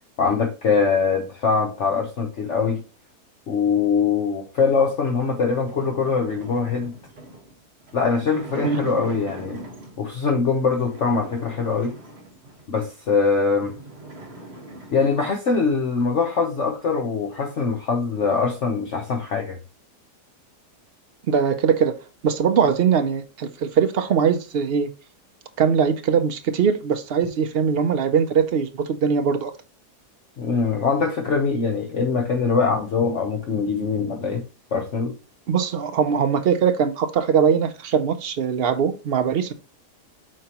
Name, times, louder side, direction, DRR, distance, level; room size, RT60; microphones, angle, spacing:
voice 1, 0.2-2.8 3.5-7.0 7.9-9.6 10.0-11.9 12.7-13.7 14.9-19.6 30.4-34.4 34.7-35.1, left 5 dB, 55° left, 1.1 m, -22 dB
sound 1, 5.0-10.1 10.7-12.8 13.2-13.3 13.5-15.4, right 2 dB, 40° right, 1.7 m, -40 dB
voice 2, 21.3-22.0 22.2-24.9 25.6-29.5 35.5-39.5, right 7 dB, 70° right, 0.5 m, -21 dB
7.5 x 4.5 x 2.9 m
omnidirectional pair, 1.7 m